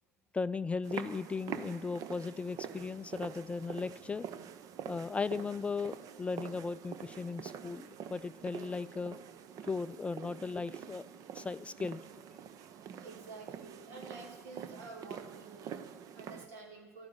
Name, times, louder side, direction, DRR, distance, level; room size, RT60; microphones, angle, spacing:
voice 1, 0.3-4.3 4.9-9.2 9.7-11.1 11.3-12.0, left 4 dB, 15° left, 16 dB, 0.3 m, -37 dB
sound 1, 0.8-16.5, right 8 dB, 45° right, 0.8 m, -46 dB
voice 2, 12.4-17.1, right 3 dB, 70° right, 3 dB, 2.6 m, -50 dB
11.5 x 9.5 x 7.8 m, 1.4 s
figure-of-eight pair, 65°, 8 cm